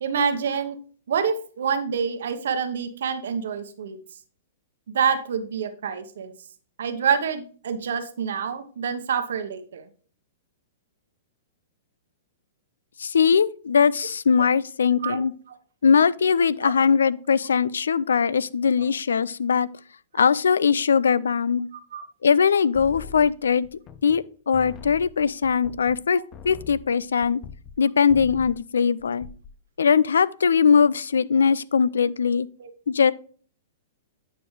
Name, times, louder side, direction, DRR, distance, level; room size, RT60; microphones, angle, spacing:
voice 1, 0.0-0.8 1.1-4.0 4.9-6.3 6.8-9.8 15.0-15.2 16.6-16.7 18.8-18.9 20.1-20.3 21.9-22.1 32.6-32.7, right 7 dB, 75° right, 1.0 m, -27 dB
voice 2, 13.0-15.3 15.8-19.7 20.1-21.7 22.2-23.7 24.0-27.4 27.8-29.3 29.8-32.5 32.9-33.1, left 6 dB, 85° left, 0.3 m, -21 dB
sound 1, 22.7-24.3 24.5-27.8 28.1-28.7 29.0-29.6, left 7 dB, 30° left, 0.6 m, -42 dB
9.3 x 5.0 x 3.2 m
hypercardioid pair, 130°, 0 cm